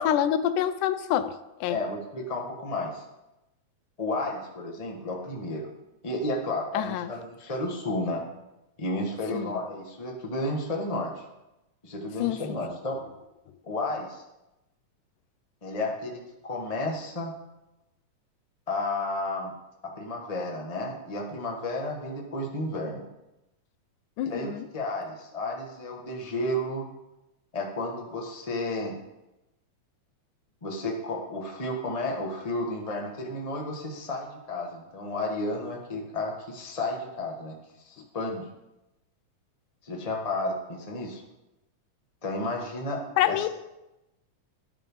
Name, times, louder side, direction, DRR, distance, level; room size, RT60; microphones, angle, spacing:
voice 1, 0.0-1.8 6.7-7.1 9.3-9.6 12.2-12.4 24.2-24.7 43.2-43.5, left 11 dB, 85° left, 12 dB, 2.2 m, -27 dB
voice 2, 1.7-3.0 4.0-5.7 6.0-8.2 8.8-11.2 11.8-13.0 13.6-14.2 15.6-17.4 18.7-19.5 19.8-23.0 24.2-26.9 27.5-29.0 30.6-37.6 37.8-38.4 39.8-41.2 42.2-43.0 43.3-43.5, left 2 dB, 35° left, 0 dB, 0.5 m, -32 dB
11.0 x 9.5 x 5.5 m, 0.95 s
omnidirectional pair, 3.5 m